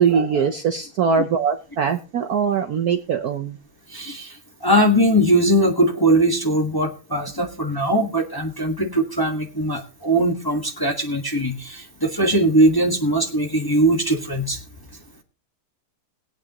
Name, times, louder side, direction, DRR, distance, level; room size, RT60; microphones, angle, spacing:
voice 1, 0.0-3.6 7.4-7.5, right 6 dB, 60° right, 7 dB, 1.0 m, -21 dB
voice 2, 3.9-14.6, right 1 dB, 10° left, 2 dB, 1.2 m, -20 dB
20.0 x 8.6 x 2.9 m, 0.34 s
omnidirectional pair, 2.3 m